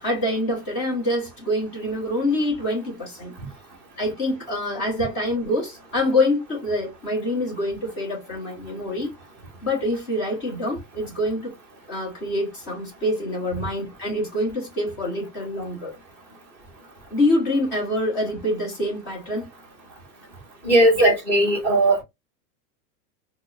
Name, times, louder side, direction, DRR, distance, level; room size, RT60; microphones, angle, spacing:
voice 1, 0.0-3.3 4.0-9.1 9.6-11.5 11.9-15.9 17.1-19.5 21.0-21.1, left 1 dB, 20° left, 1.1 m, -25 dB
voice 2, 20.6-22.0, right 1 dB, 5° left, 0.7 m, -18 dB
4.4 x 2.2 x 2.5 m
supercardioid pair, 180°, 49 cm